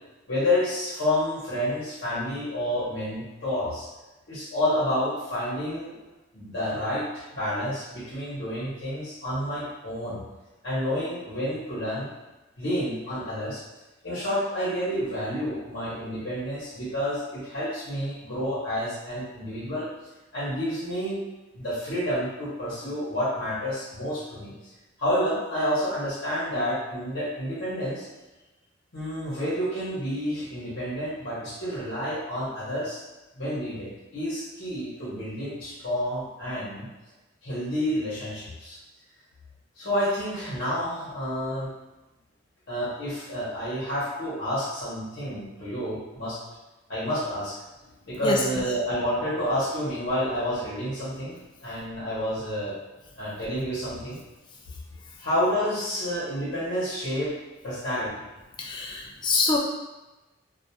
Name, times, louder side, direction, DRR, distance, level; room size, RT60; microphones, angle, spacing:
voice 1, 0.3-3.9 4.3-6.0 6.3-10.2 10.6-12.1 12.6-13.6 14.0-19.9 20.3-21.3 21.5-24.7 25.0-28.1 28.9-33.0 33.4-36.9 37.4-38.8 39.7-41.7 42.7-46.4 46.9-47.6 48.1-52.8 53.2-54.2 55.2-57.3 57.6-58.2, equal, 65° left, -10 dB, 0.9 m, -29 dB
voice 2, 48.2-48.6 58.6-59.6, left 3 dB, 25° left, 0 dB, 0.3 m, -25 dB
2.7 x 2.3 x 2.2 m, 1.1 s
head